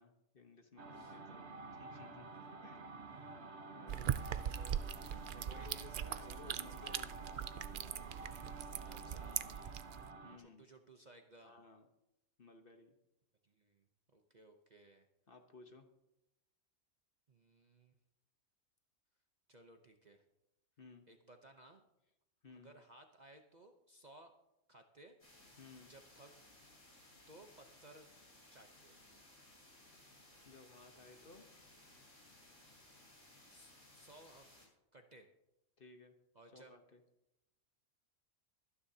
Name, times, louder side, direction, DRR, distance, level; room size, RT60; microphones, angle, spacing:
voice 1, 0.0-1.5 1.8-3.0 3.7-4.5 5.2-7.2 10.2-10.7 11.4-11.9 12.4-12.9 15.3-15.9 20.8-21.1 22.4-22.7 25.6-25.9 30.4-31.5 35.8-36.2 36.5-37.0, left 4 dB, 45° left, 6 dB, 1.2 m, -58 dB
sound 1, 0.8-10.4, right 3 dB, 55° right, 1.3 m, -50 dB
voice 2, 3.1-3.7 4.4-4.8 5.5-6.4 8.8-9.9 10.4-11.6 13.4-13.9 14.1-15.1 17.3-17.9 19.5-20.2 21.1-21.9 22.5-24.3 24.7-25.2 25.9-26.4 27.3-28.1 28.5-29.0 33.5-34.5 34.9-35.3 36.3-36.7, right 2 dB, 40° right, 4 dB, 0.8 m, -60 dB
sound 2, 3.9-10.1, right 10 dB, 85° right, 0.4 m, -41 dB
sound 3, 25.2-34.7, left 1 dB, 70° left, 6.3 m, -62 dB
24.0 x 9.8 x 2.8 m, 0.89 s
omnidirectional pair, 1.4 m